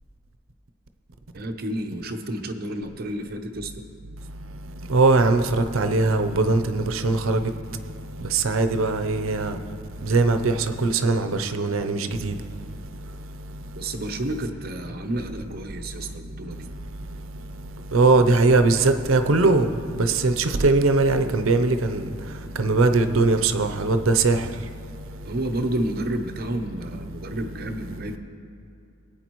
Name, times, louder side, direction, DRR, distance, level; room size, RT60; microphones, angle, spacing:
voice 1, 1.3-3.8 13.7-16.7 25.2-28.2, right 1 dB, 50° right, 0.8 m, -30 dB
voice 2, 4.9-7.5 8.3-9.6 10.0-12.4 17.9-19.7 20.0-22.1 22.6-24.5, right 3 dB, 85° right, 0.6 m, -20 dB
19.5 x 8.8 x 3.0 m
head